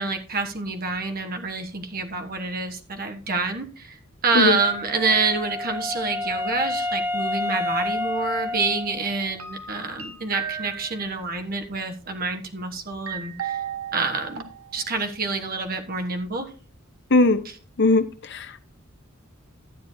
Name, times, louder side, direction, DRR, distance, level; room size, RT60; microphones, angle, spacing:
voice 1, 0.0-13.6 13.9-14.4 14.7-16.5, right 4 dB, 45° right, 1.3 m, -27 dB
Wind instrument woodwind instrument, 4.6-9.4, left 2 dB, 10° right, 0.4 m, -29 dB
sound 1, 9.4-11.3 13.1-14.8 15.1-15.2, right 8 dB, 85° right, 1.0 m, -34 dB
voice 2, 17.1-17.4 17.8-18.0 18.3-18.6, left 2 dB, 55° left, 0.8 m, -18 dB
12.5 x 9.0 x 2.7 m
head